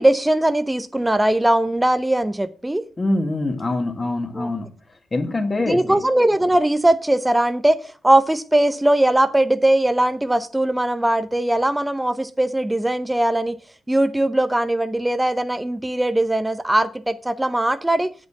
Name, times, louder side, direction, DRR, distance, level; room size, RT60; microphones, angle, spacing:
voice 1, 0.0-2.8 4.4-4.5 5.7-13.6 13.9-18.1, right 1 dB, 10° right, 0.7 m, -20 dB
voice 2, 3.0-4.7 5.1-6.0, left 2 dB, 35° left, 1.8 m, -24 dB
8.0 x 5.3 x 6.8 m
supercardioid pair, 50°, 0 cm